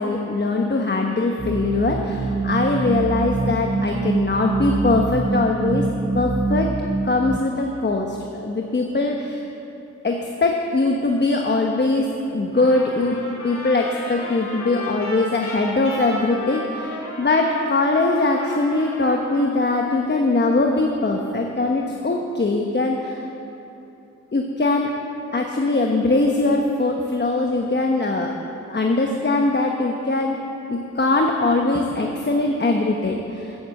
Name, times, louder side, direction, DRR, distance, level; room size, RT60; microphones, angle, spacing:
voice 1, 0.0-5.8 6.1-6.7 7.0-9.4 10.0-23.3 24.3-24.9 25.3-28.3 28.7-30.4 30.7-33.6, left 2 dB, 35° left, 1 dB, 1.1 m, -21 dB
sound 1, 1.4-7.4, right 3 dB, 25° right, 0.5 m, -24 dB
Trumpet, 12.6-19.6, left 1 dB, 80° left, 2.7 m, -35 dB
15.0 x 7.9 x 7.7 m, 2.8 s
wide cardioid pair, 80°, 29 cm